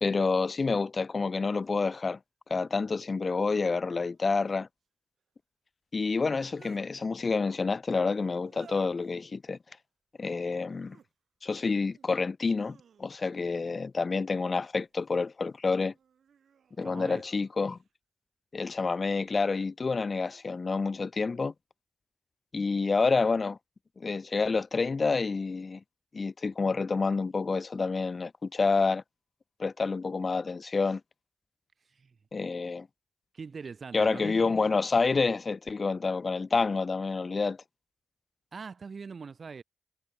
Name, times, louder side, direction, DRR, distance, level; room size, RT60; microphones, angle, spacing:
voice 1, 0.0-2.2 2.5-4.7 5.9-9.6 10.2-11.0 11.4-15.9 16.8-17.8 18.5-21.5 22.5-23.6 24.0-25.8 26.1-29.0 29.6-31.0 32.3-32.9 33.9-37.6, left 4 dB, 45° left, 0.3 m, -28 dB
sound 1, 1.6-1.7 4.0-4.6 6.1-6.9 8.4-9.1 10.6-11.1 11.6-12.1 12.5-13.4 14.6-15.3 15.9-17.9 19.0-19.5 20.1-20.6, right 7 dB, 70° right, 3.7 m, -60 dB
voice 2, 16.8-17.2 31.9-32.2 33.3-34.5 38.5-39.6, right 5 dB, 55° right, 2.0 m, -42 dB
supercardioid pair, 40°, 0 cm